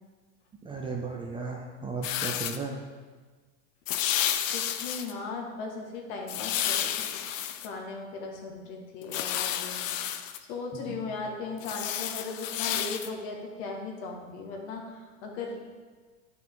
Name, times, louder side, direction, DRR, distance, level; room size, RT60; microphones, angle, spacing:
voice 1, 0.6-2.8 10.7-11.1, right 4 dB, 15° right, 1 dB, 0.5 m, -35 dB
sound 1, 2.0-2.6 3.9-5.1 6.3-7.7 9.0-10.4 11.6-13.1, left 10 dB, 75° left, 0.7 m, -31 dB
voice 2, 4.5-6.9 7.3-9.9 10.4-15.8, left 3 dB, 55° left, 1 dB, 1.9 m, -38 dB
10.5 x 5.9 x 3.8 m, 1.4 s
supercardioid pair, 130°, 39 cm